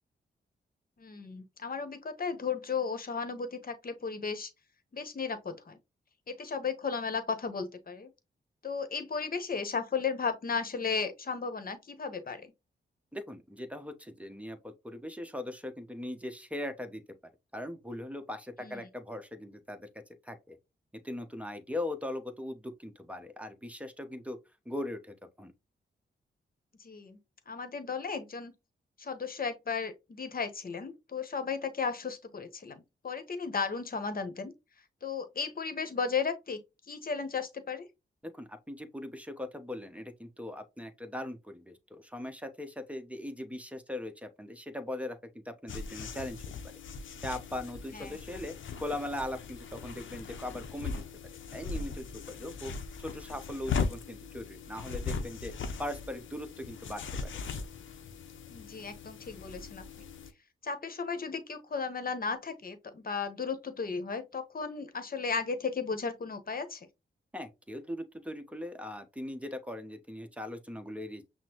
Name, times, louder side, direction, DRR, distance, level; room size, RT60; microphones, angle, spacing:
voice 1, 1.0-4.5 4.9-5.8 6.3-8.1 8.6-12.5 18.6-18.9 26.8-27.2 27.5-28.5 29.0-34.5 35.0-36.6 36.9-37.9 47.9-48.2 58.5-60.1 60.6-66.9, left 5 dB, 45° left, 1.0 m, -35 dB
voice 2, 13.1-17.0 17.5-19.9 20.2-20.6 21.0-24.4 24.7-25.5 38.2-45.2 45.4-46.7 47.2-51.0 51.5-52.7 53.0-55.5 55.8-57.3 67.3-71.3, left 1 dB, 5° right, 0.8 m, -40 dB
sound 1, 45.7-60.3, left 5 dB, 75° left, 0.6 m, -39 dB
5.9 x 2.1 x 2.9 m
cardioid pair, 60°, 20 cm